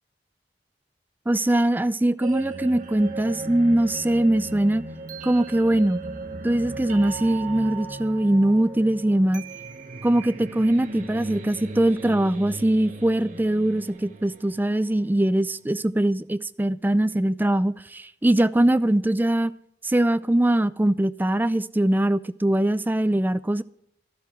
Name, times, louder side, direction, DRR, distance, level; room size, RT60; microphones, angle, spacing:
voice 1, 1.3-4.8 5.2-6.0 6.4-9.4 10.0-19.5 19.8-23.6, right 1 dB, 10° right, 0.4 m, -22 dB
sound 1, 2.2-15.2, right 2 dB, 45° right, 1.3 m, -37 dB
12.5 x 12.0 x 4.5 m
head